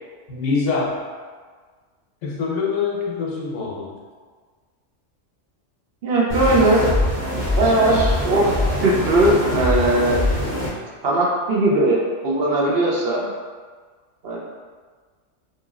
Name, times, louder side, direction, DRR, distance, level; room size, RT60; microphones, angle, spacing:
voice 1, 0.3-1.0 2.2-3.9, left 4 dB, 80° left, -3 dB, 1.0 m, -24 dB
voice 2, 6.0-6.8 7.6-8.5 8.8-10.2 11.0-13.3 14.2-14.4, right 1 dB, 60° right, -4 dB, 0.8 m, -19 dB
sound 1, 6.3-10.7, left 1 dB, 40° right, 1.3 m, -23 dB
2.8 x 2.8 x 2.4 m, 1.5 s
omnidirectional pair, 1.3 m